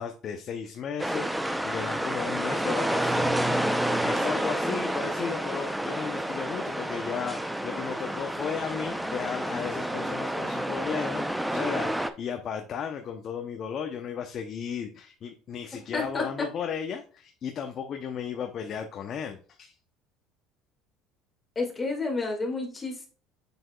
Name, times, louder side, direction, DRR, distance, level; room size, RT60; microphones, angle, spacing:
voice 1, 0.0-3.5 4.0-19.7, left 7 dB, 45° left, 5 dB, 0.7 m, -35 dB
sound 1, 1.0-12.1, right 1 dB, 5° right, 0.6 m, -29 dB
voice 2, 15.9-16.3 21.6-23.1, left 3 dB, 25° left, 1 dB, 2.1 m, -30 dB
6.9 x 6.2 x 2.3 m, 0.39 s
supercardioid pair, 95°, 0 cm